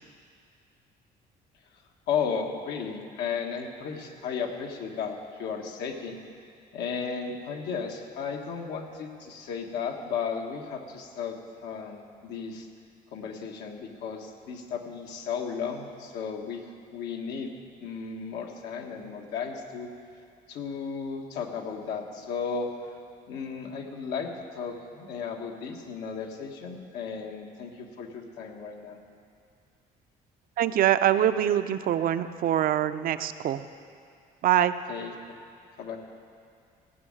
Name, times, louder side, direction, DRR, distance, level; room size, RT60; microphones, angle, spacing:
voice 1, 2.1-6.2 6.7-11.4 11.6-12.7 13.1-16.6 16.9-17.5 17.8-19.9 20.5-22.7 23.3-29.0 34.9-35.4 35.8-36.0, left 6 dB, 85° left, 2 dB, 1.5 m, -34 dB
voice 2, 30.6-33.6 34.4-34.7, right 11 dB, 60° right, 11 dB, 0.6 m, -24 dB
15.5 x 6.4 x 8.7 m, 2.3 s
cardioid pair, 110°, 17 cm